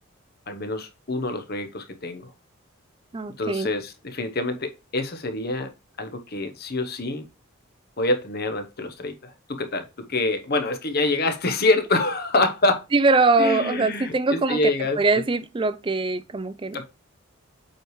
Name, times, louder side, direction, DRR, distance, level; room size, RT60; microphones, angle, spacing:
voice 1, 0.5-2.3 3.4-5.7 6.0-7.3 8.0-12.8 13.4-15.0 16.7-16.9, left 2 dB, 45° left, 0.9 m, -26 dB
voice 2, 3.1-3.7 12.9-16.9, right 3 dB, 25° right, 0.4 m, -22 dB
7.6 x 4.7 x 3.1 m
head